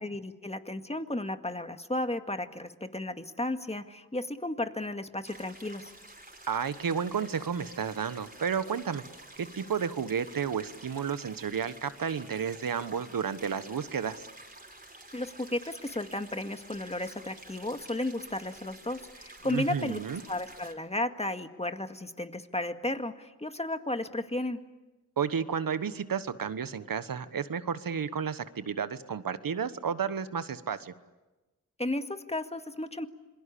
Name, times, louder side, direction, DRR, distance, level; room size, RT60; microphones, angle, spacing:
voice 1, 0.0-5.9 15.1-20.0 20.3-24.6 31.8-33.1, left 1 dB, 20° left, 8 dB, 1.9 m, -34 dB
sound 1, 5.2-20.7, right 2 dB, 25° right, 5.0 m, -50 dB
voice 2, 6.5-9.0 9.4-14.3 19.4-20.2 25.2-30.9, right 7 dB, 75° right, 13 dB, 1.3 m, -32 dB
27.0 x 22.0 x 8.6 m, 1.1 s
cardioid pair, 45°, 34 cm